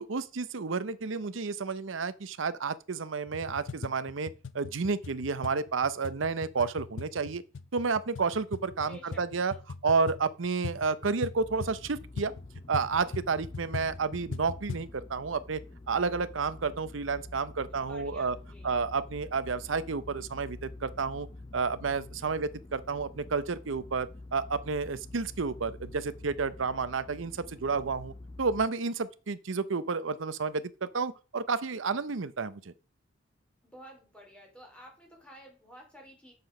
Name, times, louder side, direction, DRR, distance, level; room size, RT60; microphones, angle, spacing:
voice 1, 0.0-4.3 4.5-7.4 7.7-9.5 9.8-12.3 12.7-18.4 18.6-21.3 21.5-28.1 28.4-32.7, right 4 dB, 85° right, 0.7 m, -31 dB
sound 1, 3.3-14.9, left 4 dB, 75° left, 0.6 m, -41 dB
voice 2, 8.9-9.6 17.5-18.7 22.1-22.4 33.6-36.3, equal, 5° left, 3.3 m, -52 dB
sound 2, 11.4-28.7, left 2 dB, 25° left, 0.5 m, -47 dB
7.9 x 6.8 x 5.4 m
head